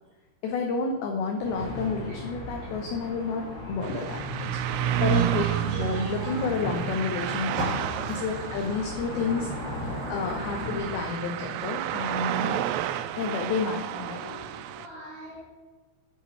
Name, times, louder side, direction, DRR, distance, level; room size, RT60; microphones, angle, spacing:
voice 1, 0.4-9.5 9.8-12.7 13.2-14.4, left 4 dB, 80° left, 2 dB, 2.2 m, -30 dB
sound 1, 1.4-11.0, left 1 dB, 55° left, 0.7 m, -37 dB
sound 2, 3.8-14.9, right 11 dB, 85° right, 2.6 m, -31 dB
voice 2, 4.7-6.4 7.5-8.3 14.1-15.4, equal, 55° right, -4 dB, 3.6 m, -38 dB
10.5 x 4.9 x 4.5 m, 1.3 s
omnidirectional pair, 5.4 m